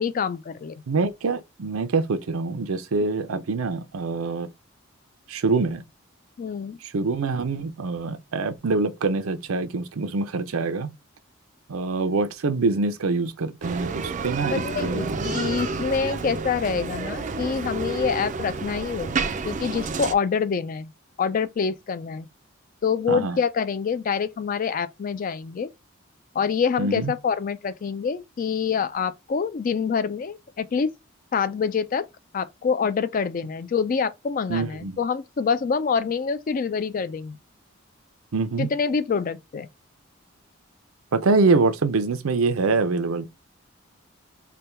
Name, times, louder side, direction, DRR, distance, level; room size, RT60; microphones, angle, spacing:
voice 1, 0.0-0.8 6.4-6.8 14.5-19.1 19.4-20.9 21.2-22.3 22.8-25.7 26.3-30.9 31.3-32.1 32.3-37.4 38.6-39.7, left 6 dB, 40° left, 0.3 m, -26 dB
voice 2, 0.9-4.5 5.3-5.8 6.8-10.9 11.7-15.2 23.1-23.4 26.8-27.1 34.5-35.0 38.3-38.7 41.1-43.3, right 3 dB, 90° right, 0.6 m, -25 dB
Bicycle, 13.6-20.1, right 4 dB, 35° right, 0.4 m, -30 dB
3.4 x 2.2 x 4.2 m
head